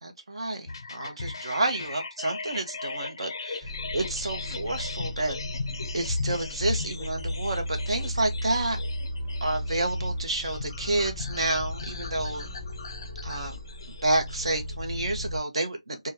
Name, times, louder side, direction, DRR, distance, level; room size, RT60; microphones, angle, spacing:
voice 1, 0.0-5.4 5.9-8.8 9.4-12.5 13.2-13.6 14.0-16.1, right 2 dB, 55° right, 0.9 m, -29 dB
sound 1, 0.7-14.7, left 3 dB, 40° left, 0.5 m, -37 dB
sound 2, 3.6-15.4, equal, 5° left, 1.3 m, -36 dB
2.9 x 2.2 x 3.2 m
figure-of-eight pair, 165°, 4 cm